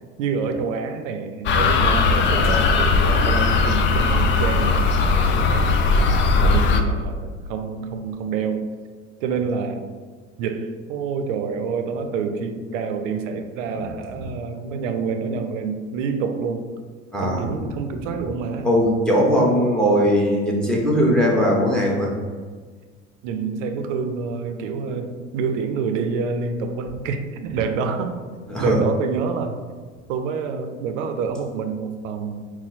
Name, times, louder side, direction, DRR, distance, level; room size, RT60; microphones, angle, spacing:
voice 1, 0.2-4.9 5.5-6.0 6.4-8.7 9.2-9.9 10.4-16.7 17.2-18.7 23.2-28.2 28.6-29.6 30.1-32.5, right 5 dB, 70° right, 7 dB, 0.6 m, -27 dB
sound 1, 1.5-6.8, left 4 dB, 30° left, 0.4 m, -18 dB
voice 2, 17.1-17.4 18.6-22.1 28.5-28.8, equal, ahead, -2 dB, 1.0 m, -19 dB
4.3 x 2.1 x 4.1 m, 1.5 s
hypercardioid pair, 85°, 38 cm